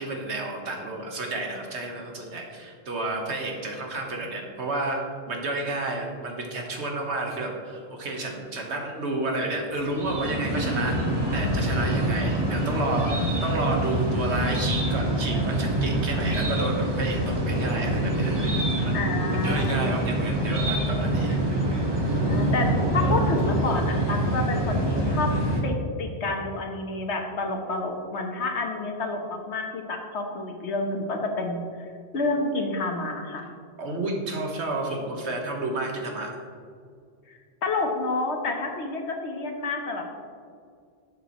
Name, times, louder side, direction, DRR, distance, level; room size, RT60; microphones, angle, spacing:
voice 1, 0.0-11.0 11.3-19.0 19.4-21.4 21.8-22.2 33.8-36.3, right 2 dB, 85° right, 1 dB, 1.6 m, -31 dB
sound 1, 9.7-25.6, right 1 dB, 25° right, 1.3 m, -25 dB
voice 2, 18.9-20.0 22.2-25.3 25.6-31.6 32.1-33.4 37.3-40.1, left 3 dB, 80° left, 2 dB, 1.4 m, -29 dB
11.0 x 7.5 x 3.0 m, 2.2 s
omnidirectional pair, 1.1 m